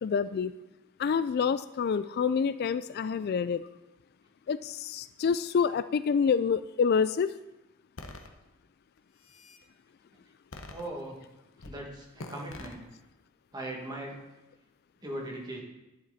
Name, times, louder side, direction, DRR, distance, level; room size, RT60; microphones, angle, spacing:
voice 1, 0.0-0.5 1.0-3.7 4.5-7.3, left 6 dB, 50° left, 14 dB, 0.3 m, -27 dB
sound 1, 8.0-8.3 9.0-9.6 10.5-11.2 11.6-11.8 12.2-12.7, left 2 dB, 70° left, 1.1 m, -44 dB
voice 2, 10.7-11.2 11.6-12.9 13.5-14.2 15.0-15.6, right 1 dB, 20° right, -1 dB, 2.2 m, -39 dB
11.5 x 10.5 x 4.2 m, 0.99 s
head